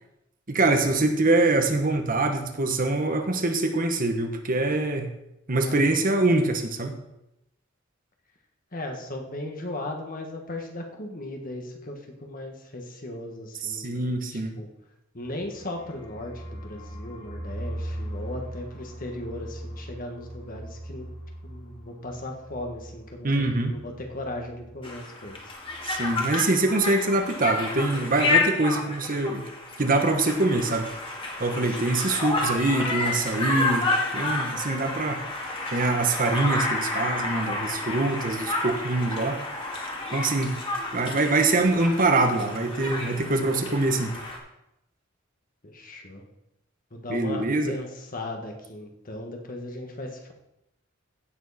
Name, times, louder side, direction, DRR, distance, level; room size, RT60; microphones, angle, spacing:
voice 1, 0.5-5.1 5.5-7.0 13.6-14.5 23.2-23.7 25.8-29.4 29.8-30.9 31.4-35.2 35.7-39.4 40.1-40.5 40.9-44.1 47.1-47.8, right 2 dB, 45° right, 5 dB, 1.2 m, -24 dB
voice 2, 5.6-6.0 8.7-14.0 14.3-14.7 15.1-21.1 21.4-25.5 45.6-46.2 46.9-50.3, left 1 dB, 45° left, 3 dB, 1.7 m, -37 dB
sound 1, 15.4-24.9 25.2-25.3 25.6-26.1, right 1 dB, 75° left, 2.4 m, -40 dB
Conversation, 24.8-44.4, left 2 dB, 25° left, 2.2 m, -30 dB
15.5 x 7.4 x 4.2 m, 0.86 s
head